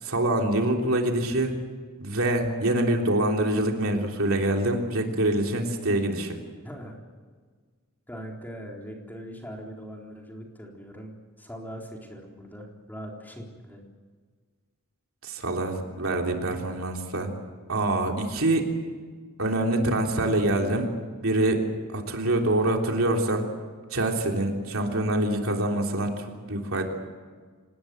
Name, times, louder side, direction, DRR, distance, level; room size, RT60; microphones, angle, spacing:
voice 1, 0.0-1.5 2.0-6.4 15.2-17.3 17.7-18.7 19.4-20.9 21.2-21.6 21.9-23.5 23.9-26.9, right 1 dB, 65° right, 2 dB, 3.5 m, -25 dB
voice 2, 6.6-7.0 8.1-11.1 11.4-13.8, equal, 10° left, 0 dB, 3.9 m, -41 dB
26.5 x 19.5 x 8.0 m, 1.5 s
head